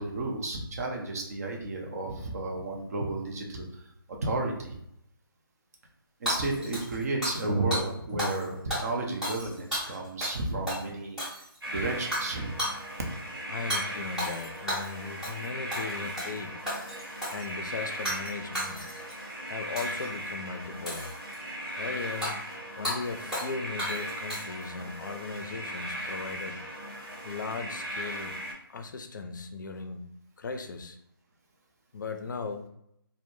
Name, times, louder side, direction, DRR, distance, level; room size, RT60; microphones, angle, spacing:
voice 1, 0.0-3.7 4.2-4.8 6.2-11.2 11.7-12.6, right 2 dB, 40° right, 0 dB, 0.6 m, -32 dB
Hammer / Shatter, 6.3-7.5 7.7-7.8 8.2-8.4 8.7-10.4 10.7-10.8 11.2-11.6 12.1-12.3 12.6-12.8 13.7-13.8 14.2-14.9 15.2-15.5 15.7-16.3 16.7-17.5 18.0-18.3 18.5-19.1 19.8-20.1 20.9-21.4 22.2-22.3 22.8-23.0 23.3-23.5 23.8-24.6, equal, 5° right, 0.7 m, -33 dB
sound 1, 11.6-28.5, equal, 85° right, 1.0 m, -38 dB
voice 2, 13.5-16.6 17.3-18.9 19.5-21.2 21.8-22.4 22.8-26.6 27.2-28.3 28.7-30.0 30.4-31.0 31.9-32.7, left 4 dB, 55° left, 6 dB, 0.4 m, -37 dB
2.1 x 2.0 x 3.0 m, 0.74 s
figure-of-eight pair, 150°, 12 cm